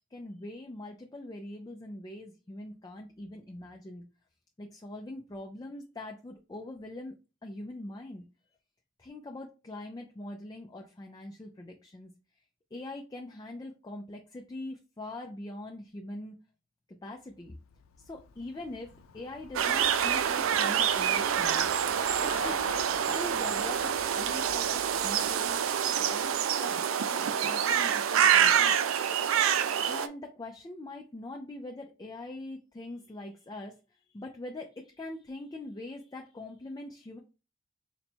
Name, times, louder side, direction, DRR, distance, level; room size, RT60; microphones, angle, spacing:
voice 1, 0.1-4.0 4.6-8.2 9.0-12.1 12.7-16.4 16.9-17.6 18.0-21.7 22.2-22.6 23.1-28.8 29.9-37.2, left 1 dB, 20° left, 2 dB, 0.4 m, -43 dB
Traffic noise roadway noise / Bicycle, 17.3-26.5, left 6 dB, 85° left, 0.4 m, -47 dB
Wind in forest with crows, 19.6-30.1, right 8 dB, 80° right, 0.4 m, -26 dB
4.0 x 2.1 x 4.3 m, 0.31 s
head